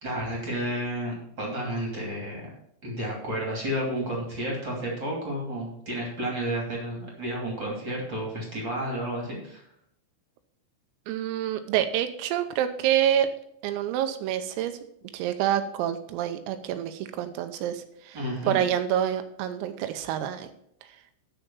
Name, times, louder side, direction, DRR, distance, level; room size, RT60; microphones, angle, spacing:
voice 1, 0.0-2.5 2.8-9.6 18.1-18.6, right 1 dB, 30° right, -2 dB, 2.5 m, -31 dB
voice 2, 11.1-13.3 13.6-14.8 15.1-18.2 18.5-20.5, right 10 dB, 85° right, 9 dB, 3.5 m, -27 dB
12.5 x 5.1 x 7.0 m, 0.70 s
omnidirectional pair, 6.0 m